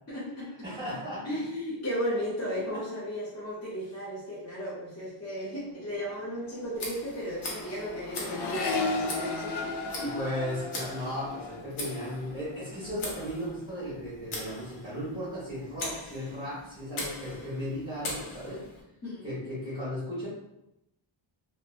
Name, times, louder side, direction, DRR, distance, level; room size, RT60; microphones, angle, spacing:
voice 1, 0.1-0.5 1.2-10.2 19.0-19.3, equal, 35° left, -10 dB, 0.9 m, -35 dB
voice 2, 0.6-1.2 2.7-2.8 10.1-18.6 19.2-20.3, equal, 10° right, -11 dB, 1.3 m, -36 dB
Accelerating revving vroom, 5.5-5.7 6.0-13.5 13.8-14.5, left 3 dB, 55° left, 0.5 m, -36 dB
Tick, 6.7-18.8, left 2 dB, 85° left, 0.9 m, -41 dB
2.9 x 2.2 x 2.5 m, 0.87 s
wide cardioid pair, 110°, 48 cm